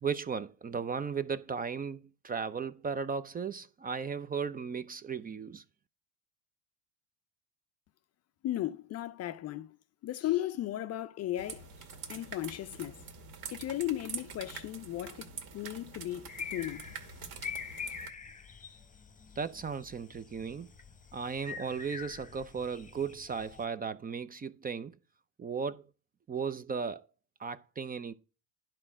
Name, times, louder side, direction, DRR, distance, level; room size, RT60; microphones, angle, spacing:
voice 1, 0.0-5.6 19.4-20.7 21.1-25.0 25.4-25.9 26.3-27.0 27.4-28.1, right 6 dB, 20° right, 0.6 m, -36 dB
voice 2, 8.4-9.8 10.0-11.7 12.1-13.0 13.5-16.9, left 13 dB, 35° left, 0.5 m, -36 dB
sound 1, 11.4-18.1, right 6 dB, 55° right, 2.2 m, -45 dB
sound 2, 16.3-23.6, left 6 dB, 15° left, 1.0 m, -45 dB
10.5 x 4.4 x 6.1 m
hypercardioid pair, 80°, 45 cm